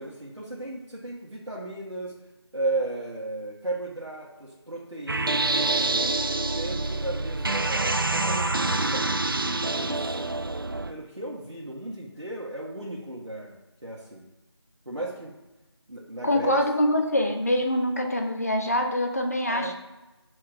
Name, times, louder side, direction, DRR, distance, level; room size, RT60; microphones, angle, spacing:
voice 1, 0.0-2.1 2.5-6.2 6.4-9.1 9.6-10.3 10.9-14.3 14.8-15.3 15.9-16.6 19.4-19.7, right 2 dB, 85° right, -6 dB, 1.6 m, -35 dB
sound 1, 5.1-10.9, right 2 dB, 50° right, 0.4 m, -26 dB
voice 2, 16.2-19.7, left 1 dB, 35° left, 3 dB, 0.7 m, -24 dB
6.2 x 3.8 x 4.9 m, 1.0 s
figure-of-eight pair, 170°, 15 cm